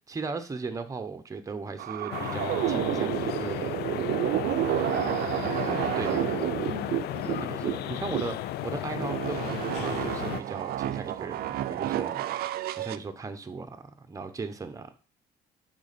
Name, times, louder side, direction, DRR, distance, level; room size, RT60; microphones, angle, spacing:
voice 1, 0.1-3.8 6.0-6.1 7.4-12.2 12.7-14.9, right 4 dB, 20° right, 8 dB, 0.8 m, -37 dB
sound 1, 1.8-8.4 8.8-13.0, right 13 dB, 65° right, 0.4 m, -30 dB
sound 2, 2.1-10.4, left 14 dB, 75° left, 0.4 m, -34 dB
voice 2, 5.4-7.4, left 4 dB, 35° left, 3 dB, 1.3 m, -42 dB
10.0 x 3.8 x 4.2 m, 0.38 s
cardioid pair, 120°, 17 cm